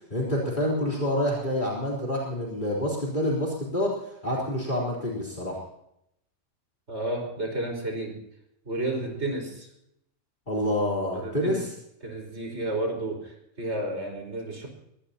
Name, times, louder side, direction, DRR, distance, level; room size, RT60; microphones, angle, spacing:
voice 1, 0.1-3.9 4.2-5.6 10.5-11.7, left 1 dB, 35° left, -4 dB, 4.0 m, -27 dB
voice 2, 6.9-8.2 8.7-9.7 11.1-11.6 12.0-14.7, right 1 dB, 50° right, 2 dB, 5.2 m, -32 dB
22.0 x 18.5 x 2.9 m, 0.78 s
omnidirectional pair, 1.5 m